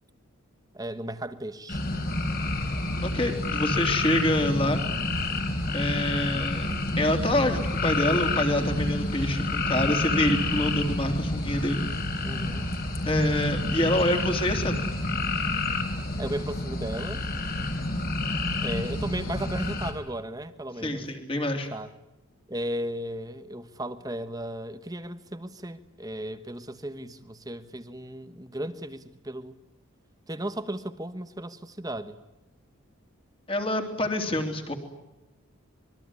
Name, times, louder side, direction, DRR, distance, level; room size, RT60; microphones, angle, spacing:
voice 1, 0.7-1.8 12.2-12.7 16.2-17.2 18.6-21.0 21.7-21.9 22.5-29.6 30.3-32.2, right 1 dB, 15° right, 1.1 m, -35 dB
sound 1, 1.7-19.9, left 2 dB, 45° left, 3.9 m, -29 dB
voice 2, 3.0-4.8 5.7-6.7 7.0-11.8 13.1-14.8 20.8-21.7 33.5-34.8, left 1 dB, 25° left, 3.2 m, -26 dB
26.0 x 22.0 x 9.7 m
head